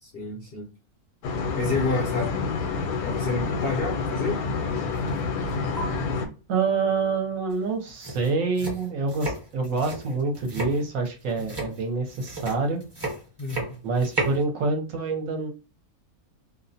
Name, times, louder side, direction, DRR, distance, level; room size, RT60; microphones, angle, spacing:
voice 1, 0.0-0.7 1.6-2.4 3.0-4.4 13.4-13.8, left 3 dB, 60° left, -1 dB, 0.7 m, -29 dB
sound 1, 1.2-6.3, left 4 dB, 80° left, 1.1 m, -28 dB
sound 2, 4.9-5.2 5.5-5.8 7.5-7.6 7.9-14.4, right 2 dB, 25° right, 0.6 m, -34 dB
voice 2, 6.5-12.8 13.8-15.5, right 4 dB, 70° right, 3 dB, 1.0 m, -26 dB
2.5 x 2.0 x 2.6 m, 0.34 s
omnidirectional pair, 1.6 m